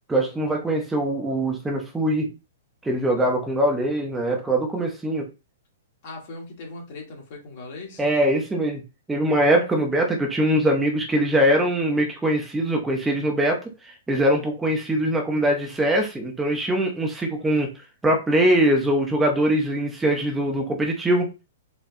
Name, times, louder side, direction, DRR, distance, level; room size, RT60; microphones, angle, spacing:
voice 1, 0.1-2.3 2.8-5.3 8.0-8.8 9.1-17.7 18.0-21.3, right 1 dB, 10° right, 2 dB, 0.6 m, -22 dB
voice 2, 6.0-8.0, left 3 dB, 50° left, 0 dB, 1.4 m, -39 dB
4.3 x 2.2 x 2.7 m, 0.29 s
hypercardioid pair, 130°, 0 cm